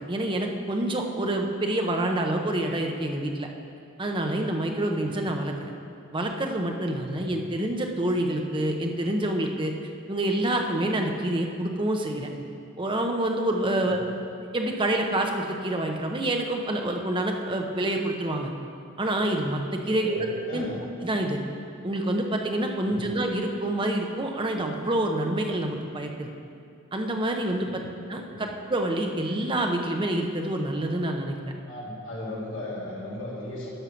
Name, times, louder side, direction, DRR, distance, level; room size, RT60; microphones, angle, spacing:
voice 1, 0.0-3.5 4.0-5.7 6.1-9.7 10.1-12.3 12.8-14.0 14.5-18.5 19.0-20.7 21.0-21.4 21.8-26.3 26.9-27.8 28.1-31.4, right 1 dB, 25° right, 2 dB, 0.7 m, -27 dB
voice 2, 4.9-5.3 7.1-7.5 13.8-14.0 19.9-20.8 22.8-23.1 27.6-27.9 28.2-28.5 31.6-33.7, left 1 dB, 65° left, -5 dB, 2.5 m, -37 dB
11.0 x 5.6 x 5.7 m, 2.4 s
head